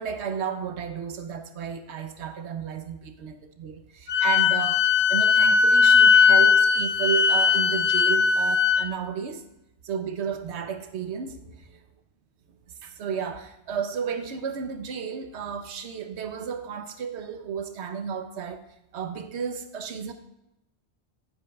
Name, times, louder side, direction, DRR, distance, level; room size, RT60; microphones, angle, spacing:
voice 1, 0.0-9.4 9.8-11.7 12.8-18.6 18.9-20.1, right 7 dB, 85° right, 1.1 m, -32 dB
Wind instrument woodwind instrument, 4.1-8.8, left 5 dB, 85° left, 0.9 m, -19 dB
15.0 x 8.1 x 2.3 m
omnidirectional pair, 1.1 m